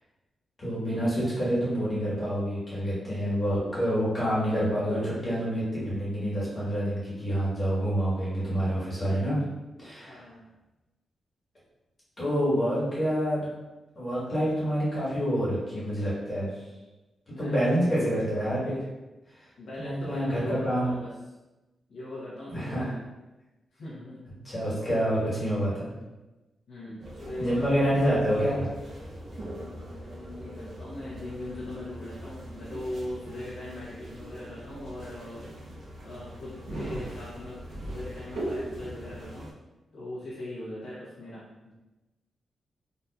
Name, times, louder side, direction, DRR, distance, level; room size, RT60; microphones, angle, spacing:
voice 1, 0.6-9.4 9.8-10.2 12.2-13.5 13.9-16.5 17.4-18.8 19.4-19.5 19.8-20.9 22.5-22.9 24.4-25.9 27.4-28.7, equal, 25° left, -8 dB, 1.3 m, -27 dB
voice 2, 10.1-10.4 17.3-18.2 19.6-21.1 21.9-23.0 23.7-24.2 26.7-28.6 29.3-35.5 36.0-39.5 39.9-41.7, left 1 dB, 70° left, -9 dB, 1.0 m, -40 dB
sound 1, 27.0-39.5, right 1 dB, 50° right, 0.6 m, -40 dB
4.0 x 2.8 x 2.3 m, 1.1 s
wide cardioid pair, 180°, 0 cm